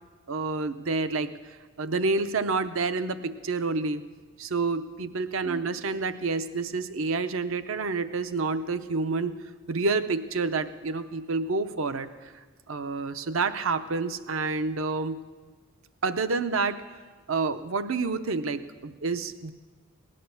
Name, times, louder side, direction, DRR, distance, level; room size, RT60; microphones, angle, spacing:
voice 1, 0.3-1.3 1.8-4.0 4.4-9.4 9.7-12.3 12.7-15.2 16.0-16.8 17.3-19.5, right 4 dB, 65° right, 11 dB, 0.7 m, -28 dB
18.0 x 11.0 x 7.0 m, 1.4 s
head